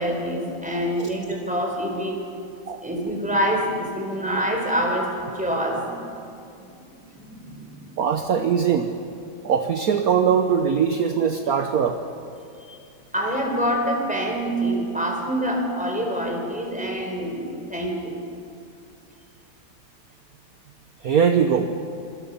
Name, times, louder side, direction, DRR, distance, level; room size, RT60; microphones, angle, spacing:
voice 1, 0.0-2.2 2.8-6.1 6.6-8.0 12.7-12.8 13.1-18.2, equal, 5° right, 1 dB, 4.1 m, -26 dB
voice 2, 8.0-8.9 9.4-12.0 21.0-21.8, right 7 dB, 55° right, 6 dB, 1.3 m, -21 dB
26.5 x 26.0 x 5.5 m, 2.5 s
omnidirectional pair, 2.1 m